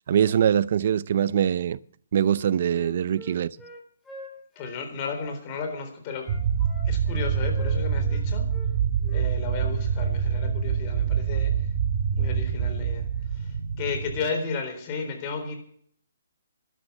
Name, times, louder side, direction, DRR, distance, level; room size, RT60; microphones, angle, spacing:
voice 1, 0.1-1.8 2.1-3.5, right 9 dB, 50° right, 0.6 m, -23 dB
Wind instrument woodwind instrument, 2.3-5.7 6.2-8.2 8.5-8.7 9.0-9.3 9.6-9.8, left 2 dB, 5° left, 3.3 m, -45 dB
voice 2, 4.6-6.3 6.8-8.5 9.1-11.7 12.1-13.0 13.3-15.5, left 4 dB, 30° left, 4.0 m, -33 dB
sound 1, 6.3-14.2, right 7 dB, 35° right, 1.6 m, -26 dB
12.0 x 12.0 x 7.3 m
hypercardioid pair, 155°, 0 cm